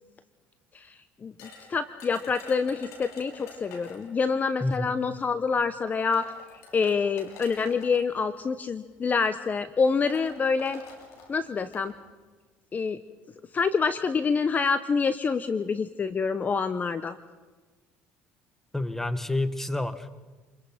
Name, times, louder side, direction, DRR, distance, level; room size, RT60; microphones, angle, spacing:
sound 1, 1.4-4.1 5.2-5.3 5.9-8.0 8.9-9.2 9.4-9.5 9.8-11.9, left 4 dB, 75° left, 6.2 m, -47 dB
voice 1, 1.7-6.3 6.7-10.8 11.3-11.9 12.7-13.0 13.5-17.2, left 5 dB, 35° left, 13 dB, 1.0 m, -26 dB
voice 2, 4.6-4.9 18.7-20.1, left 2 dB, 5° left, 12 dB, 1.8 m, -29 dB
28.0 x 22.0 x 5.9 m, 1.3 s
supercardioid pair, 85°, 5 cm